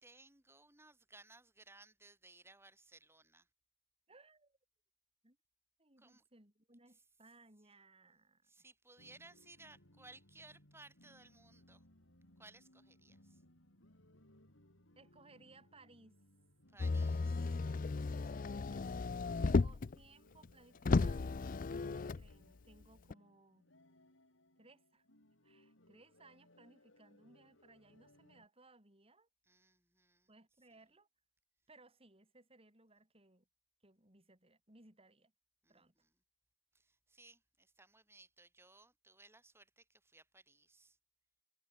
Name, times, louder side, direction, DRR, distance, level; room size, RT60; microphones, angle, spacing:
voice 1, 0.0-3.5 6.0-6.2 8.4-11.8 12.4-13.4 16.7-18.3 29.4-30.3 35.6-36.1 36.7-41.0, right 2 dB, 15° right, 4.6 m, -61 dB
voice 2, 4.1-4.6 5.2-5.4 5.8-8.7 15.0-16.2 18.1-19.1 19.4-23.7 24.6-25.0 25.4-29.3 30.3-31.1 31.7-33.5 33.8-35.3 35.7-35.9, right 2 dB, 30° right, 7.9 m, -64 dB
sound 1, 9.0-28.5, left 1 dB, 85° left, 6.6 m, -67 dB
Motor vehicle (road), 16.8-19.9 20.4-20.5 20.8-22.3 23.1-23.2, left 3 dB, 45° left, 0.5 m, -34 dB
head